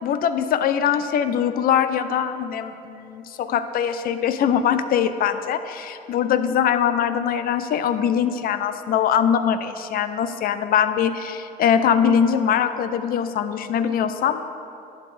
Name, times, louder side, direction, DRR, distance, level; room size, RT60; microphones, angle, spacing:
voice 1, 0.0-14.4, left 8 dB, 60° left, 10 dB, 0.5 m, -22 dB
11.5 x 8.7 x 3.3 m, 2.6 s
cardioid pair, 110°, 17 cm